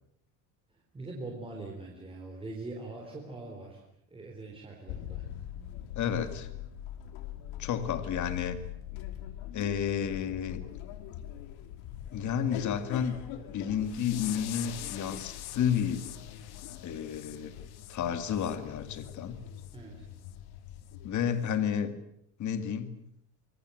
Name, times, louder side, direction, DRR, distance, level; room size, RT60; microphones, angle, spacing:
voice 1, 0.9-3.8 4.1-5.2 19.7-20.0, right 2 dB, 10° right, -1 dB, 3.9 m, -42 dB
sound 1, 4.9-21.2, left 11 dB, 75° left, 3.0 m, -43 dB
voice 2, 6.0-6.5 7.6-8.6 9.5-10.6 12.1-13.2 13.5-16.1 16.8-17.6 17.9-19.4 21.0-21.9 22.4-23.0, left 8 dB, 40° left, 10 dB, 2.3 m, -31 dB
sound 2, 13.8-18.6 18.9-19.2 19.6-19.8 20.2-20.4 20.8-20.9, left 14 dB, 55° left, 2.1 m, -45 dB
25.0 x 22.5 x 7.9 m, 0.73 s
cardioid pair, 165°, 46 cm